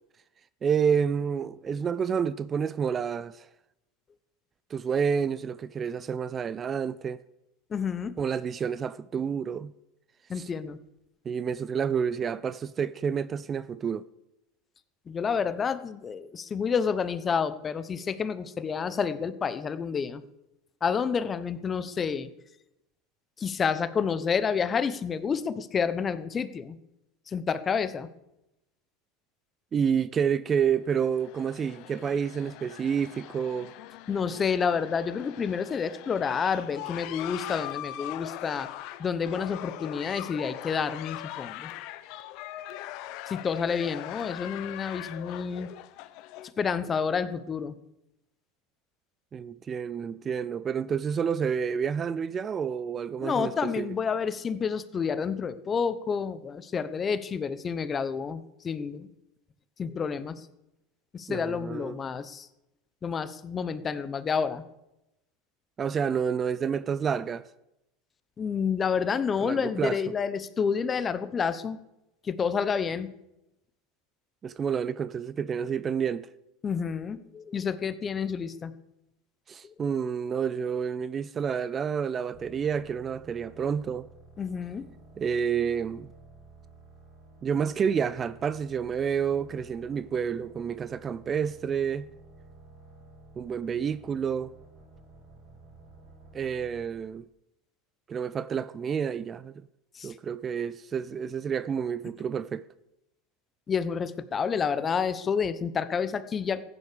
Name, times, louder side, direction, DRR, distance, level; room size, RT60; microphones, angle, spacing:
voice 1, 0.6-3.5 4.7-7.2 8.2-9.7 10.4-10.5 11.3-14.1 29.7-33.7 49.3-53.9 61.3-62.0 65.8-67.5 69.4-70.0 74.4-76.3 79.5-84.1 85.2-86.1 87.4-92.1 93.4-94.5 96.3-97.3 98.1-99.6 100.0-102.6, right 7 dB, 30° right, 0.5 m, -29 dB
voice 2, 7.7-8.1 10.3-10.8 15.1-20.2 20.8-22.3 23.4-26.8 27.3-28.1 34.1-38.7 39.0-41.7 43.3-45.7 46.6-47.8 53.2-59.1 59.8-60.5 61.1-62.5 63.0-64.6 68.4-71.8 72.2-73.1 76.6-78.7 79.6-79.7 84.4-84.9 99.9-100.1 103.7-106.6, left 6 dB, 25° left, 1.0 m, -29 dB
sound 1, 30.9-46.5, left 15 dB, 60° left, 0.9 m, -41 dB
sound 2, 82.3-97.0, right 2 dB, 60° right, 4.0 m, -53 dB
14.5 x 10.0 x 6.8 m
supercardioid pair, 110°, 0 cm